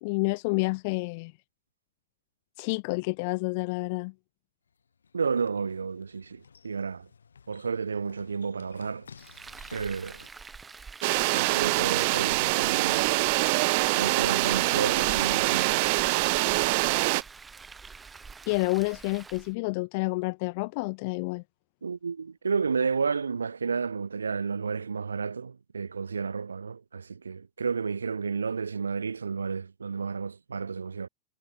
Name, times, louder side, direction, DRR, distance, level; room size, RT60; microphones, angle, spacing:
voice 1, 0.0-1.3 2.6-4.1 18.5-21.4, left 28 dB, 45° left, 0.3 m, -29 dB
sound 1, 4.7-10.3, left 6 dB, 70° left, 7.3 m, -54 dB
voice 2, 5.1-7.1 7.5-9.1 9.7-10.3 11.3-13.1 13.9-15.8 21.8-31.1, right 5 dB, 75° right, 2.8 m, -31 dB
Frying (food), 9.2-19.5, right 4 dB, 15° right, 4.2 m, -46 dB
sound 2, 11.0-17.2, right 28 dB, 45° right, 0.5 m, -24 dB
figure-of-eight pair, 90°, 0 cm